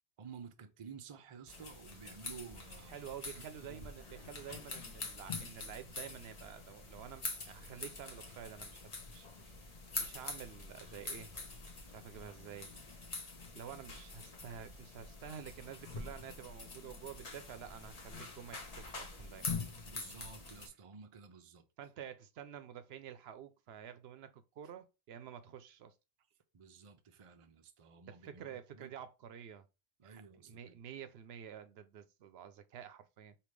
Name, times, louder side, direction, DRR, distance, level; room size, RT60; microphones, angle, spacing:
voice 1, 0.2-3.0 3.4-4.1 19.9-21.7 26.5-28.9 30.0-30.8, right 6 dB, 40° right, 0.5 m, -53 dB
sound 1, 1.5-20.7, left 3 dB, 40° left, 0.9 m, -45 dB
voice 2, 2.9-11.3 11.9-12.7 13.5-19.5 21.8-25.9 28.1-29.6 30.0-33.4, right 9 dB, 75° right, 0.8 m, -50 dB
5.1 x 2.8 x 3.1 m
omnidirectional pair, 1.1 m